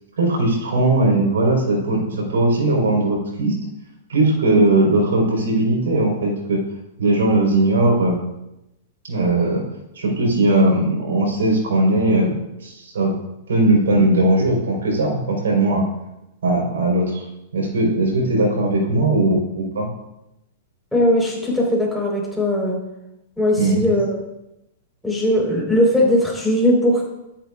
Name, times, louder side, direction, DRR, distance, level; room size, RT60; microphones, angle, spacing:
voice 1, 0.2-3.5 4.1-6.6 7.0-8.2 9.1-9.6 10.0-12.3 12.6-13.2 13.5-15.9 16.4-17.2 17.5-19.9 23.6-23.9, right 2 dB, 85° right, 0 dB, 4.0 m, -19 dB
voice 2, 20.9-22.8 23.4-24.2 25.0-27.1, left 1 dB, ahead, -3 dB, 4.0 m, -19 dB
12.5 x 10.0 x 2.4 m, 0.89 s
hypercardioid pair, 135°, 0 cm